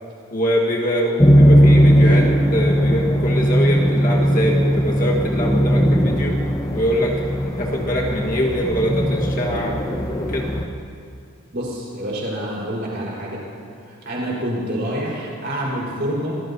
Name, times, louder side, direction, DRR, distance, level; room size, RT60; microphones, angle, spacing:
voice 1, 0.3-6.4 6.7-7.2 7.6-10.5, equal, 35° left, -2 dB, 1.5 m, -23 dB
sound 1, 1.2-10.7, equal, 15° left, 1.1 m, -18 dB
voice 2, 11.5-13.4 13.9-16.4, equal, 50° right, -4 dB, 4.5 m, -27 dB
26.5 x 18.5 x 2.8 m, 2.4 s
head